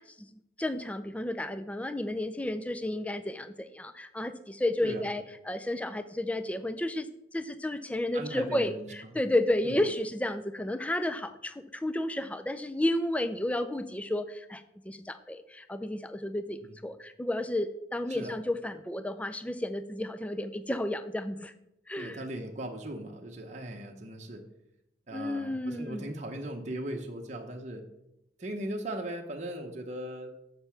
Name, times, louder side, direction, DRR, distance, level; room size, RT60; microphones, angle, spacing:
voice 1, 0.0-21.5 21.9-22.2 25.1-26.1, left 1 dB, 5° left, 10 dB, 0.4 m, -32 dB
voice 2, 4.8-5.1 8.1-9.2 9.6-9.8 16.6-16.8 18.1-18.4 22.0-24.4 25.1-27.8 28.4-30.3, right 1 dB, 40° right, 1 dB, 0.9 m, -38 dB
6.8 x 6.6 x 5.8 m, 0.84 s
head